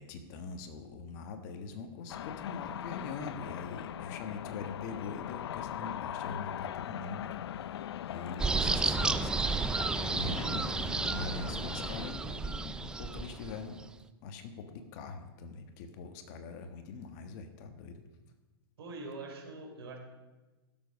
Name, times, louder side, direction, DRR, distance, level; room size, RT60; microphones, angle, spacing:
voice 1, 0.0-9.4 10.1-13.8 14.2-18.0, left 4 dB, 45° left, 7 dB, 1.5 m, -43 dB
sound 1, 2.1-12.1, left 11 dB, 80° left, 0.4 m, -40 dB
sound 2, 8.4-13.8, right 4 dB, 5° right, 0.3 m, -32 dB
voice 2, 18.8-20.0, right 3 dB, 70° right, 2 dB, 3.6 m, -43 dB
16.0 x 7.4 x 5.3 m, 1.2 s
hypercardioid pair, 140°, 13 cm